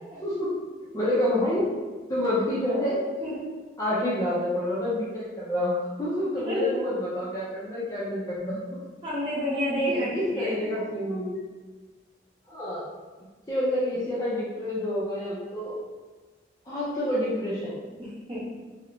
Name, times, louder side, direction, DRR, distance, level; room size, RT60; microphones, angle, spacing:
voice 1, 0.9-1.7 2.1-3.0 3.8-8.8 9.9-11.4 12.5-12.8 13.5-15.8 16.7-17.8, left 1 dB, 20° left, -8 dB, 0.4 m, -28 dB
voice 2, 6.4-6.8 9.0-10.1 10.3-10.5 18.0-18.5, equal, 30° right, -9 dB, 0.9 m, -29 dB
2.8 x 2.0 x 2.5 m, 1.3 s
head